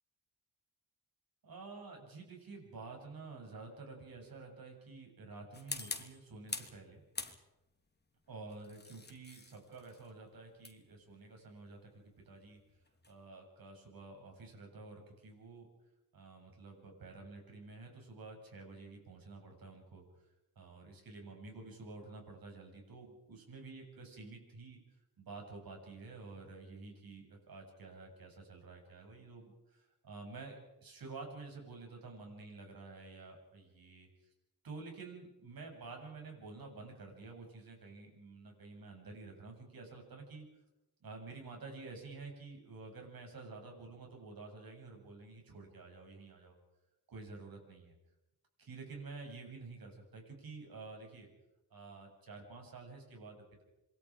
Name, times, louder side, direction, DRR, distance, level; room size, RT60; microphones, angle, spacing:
voice 1, 1.4-7.0 8.3-12.6 13.1-15.7 16.1-20.0 20.6-24.8 25.2-34.1 34.6-40.5 41.0-46.6 47.1-47.9 48.6-51.3 51.7-53.6, right 3 dB, 70° right, 2 dB, 7.6 m, -50 dB
sound 1, 5.5-6.8 7.1-7.8 8.5-13.2, left 3 dB, 30° left, 2.9 m, -46 dB
27.5 x 23.5 x 5.1 m, 0.95 s
cardioid pair, 80°, 36 cm